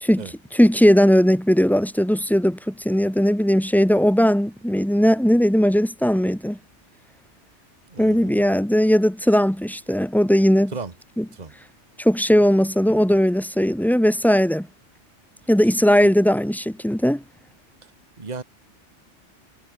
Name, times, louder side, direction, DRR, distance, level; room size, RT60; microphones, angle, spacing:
voice 1, 0.0-6.6 8.0-10.7 11.2-11.3 12.0-14.7 15.5-17.2, equal, ahead, 1.2 m, -18 dB
voice 2, 7.9-8.6 10.7-10.9 11.3-11.5 16.0-16.1 18.2-18.4, right 4 dB, 35° right, 1.8 m, -35 dB
omnidirectional pair, 1.2 m